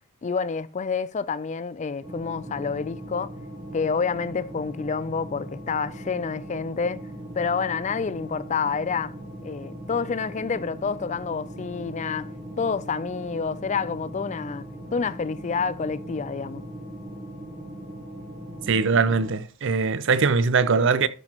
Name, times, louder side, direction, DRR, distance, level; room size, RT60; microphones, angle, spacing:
voice 1, 0.2-3.3 3.7-7.0 7.3-9.1 9.4-12.3 12.6-16.6, left 5 dB, 30° left, 0.4 m, -28 dB
sound 1, 2.0-19.3, right 1 dB, 25° right, 1.2 m, -39 dB
voice 2, 18.7-21.1, right 5 dB, 55° right, 0.6 m, -21 dB
13.0 x 6.1 x 3.0 m
head